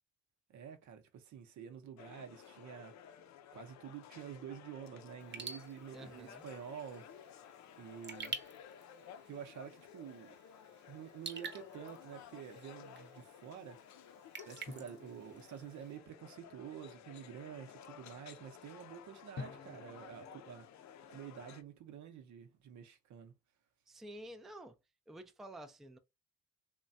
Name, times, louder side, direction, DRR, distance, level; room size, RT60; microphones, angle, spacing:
voice 1, 0.5-2.9 3.5-7.1 7.8-8.4 9.3-10.4 10.9-13.8 14.4-20.7 21.1-23.3, right 8 dB, 75° right, 0.7 m, -49 dB
sound 1, 2.0-21.6, left 9 dB, 65° left, 0.5 m, -55 dB
Raindrop / Drip, 5.2-16.0, right 5 dB, 35° right, 0.8 m, -50 dB
voice 2, 5.9-6.5 23.9-24.8 25.1-26.0, right 1 dB, ahead, 0.4 m, -50 dB
sound 2, 14.7-17.0 19.4-22.3, left 4 dB, 40° left, 0.8 m, -53 dB
3.2 x 2.2 x 2.5 m
cardioid pair, 90°, 30 cm